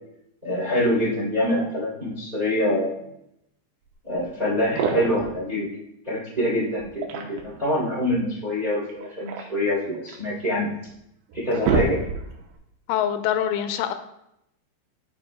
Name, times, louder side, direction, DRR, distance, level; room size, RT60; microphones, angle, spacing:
voice 1, 0.4-3.0 4.0-5.7 6.0-10.7 11.3-12.0, left 1 dB, 20° right, -6 dB, 1.4 m, -25 dB
sound 1, 4.2-4.3 4.6-5.3 6.8-7.6 8.9-10.3 10.9-11.0 11.3-12.5, right 5 dB, 80° right, 3.0 m, -27 dB
voice 2, 12.9-13.9, left 10 dB, 90° left, 9 dB, 3.1 m, -24 dB
11.5 x 4.9 x 2.2 m, 0.80 s
omnidirectional pair, 5.5 m